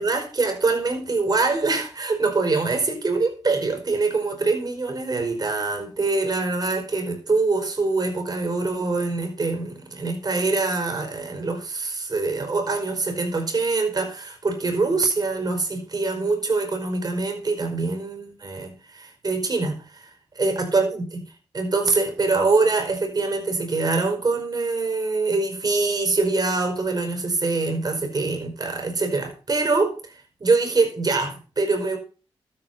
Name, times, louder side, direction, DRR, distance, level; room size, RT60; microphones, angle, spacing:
voice 1, 0.0-20.1 20.4-21.2 21.5-30.0 30.4-32.0, right 3 dB, 40° right, 5.4 m, -24 dB
12.5 x 9.0 x 5.7 m
cardioid pair, 65°, 10 cm